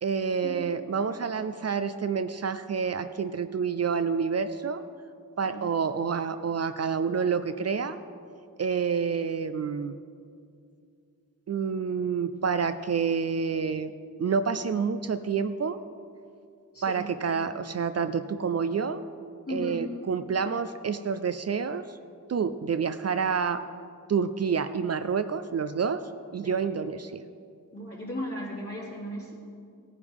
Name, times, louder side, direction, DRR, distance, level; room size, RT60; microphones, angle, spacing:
voice 1, 0.0-4.8 5.4-8.0 8.6-10.0 11.5-13.9 14.2-15.8 16.8-19.0 19.5-22.0 22.3-23.6 24.1-26.0 26.3-27.2, right 6 dB, 45° right, 10 dB, 0.4 m, -28 dB
voice 2, 16.7-17.1 19.4-19.8 26.4-26.6 27.7-29.3, equal, 40° left, -4 dB, 3.0 m, -36 dB
17.5 x 9.7 x 3.5 m, 2.4 s
wide cardioid pair, 105°, 34 cm